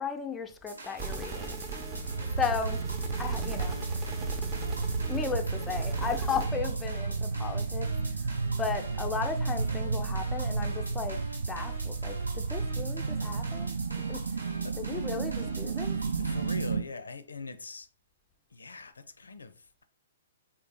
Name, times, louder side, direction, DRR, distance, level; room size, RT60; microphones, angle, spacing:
voice 1, 0.0-1.5 2.4-2.8 3.2-3.8 5.1-7.9 8.6-11.2 11.5-13.7 14.1-14.2 14.8-16.0, left 5 dB, 10° left, 0.4 m, -35 dB
sound 1, 0.7-16.7, right 2 dB, 85° right, 1.4 m, -44 dB
sound 2, 1.0-6.5, right 4 dB, 25° right, 0.7 m, -39 dB
sound 3, 1.8-16.8, right 4 dB, 60° right, 0.3 m, -32 dB
voice 2, 16.2-17.9 18.5-19.8, left 3 dB, 70° left, 0.5 m, -42 dB
3.7 x 2.5 x 3.6 m
figure-of-eight pair, 115°, 0 cm